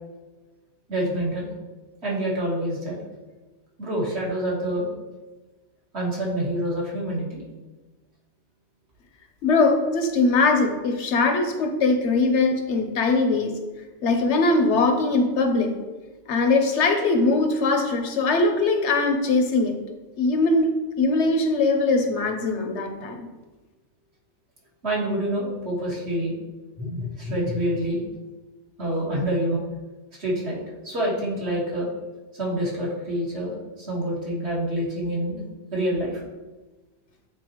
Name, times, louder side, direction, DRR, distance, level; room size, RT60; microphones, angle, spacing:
voice 1, 0.9-1.5 2.0-3.0 3.8-4.9 5.9-7.4 24.8-26.3 26.8-28.0 28.8-29.6 30.2-31.9 32.4-35.4 35.7-36.2, right 1 dB, 70° right, -5 dB, 2.0 m, -27 dB
voice 2, 9.4-13.6 14.0-15.8 16.3-19.7 20.2-23.3, left 3 dB, 85° left, 6 dB, 1.1 m, -21 dB
8.8 x 4.0 x 3.0 m, 1.2 s
omnidirectional pair, 1.2 m